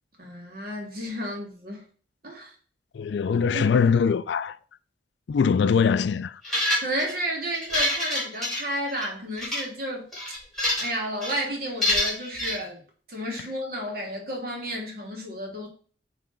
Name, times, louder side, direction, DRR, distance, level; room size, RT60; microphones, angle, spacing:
voice 1, 0.2-1.9 2.2-2.5 3.5-3.7 6.8-10.1 10.8-12.8 13.1-15.7, equal, 50° right, 2.0 m, -32 dB
voice 2, 2.9-4.6 5.3-6.4, left 6 dB, 70° left, 0.4 m, -22 dB
sound 1, 6.4-7.1 7.5-9.1 9.4-9.6 10.1-10.9 11.2-11.4 11.8-12.6, left 1 dB, ahead, 3.2 m, -26 dB
8.6 x 3.3 x 3.8 m
head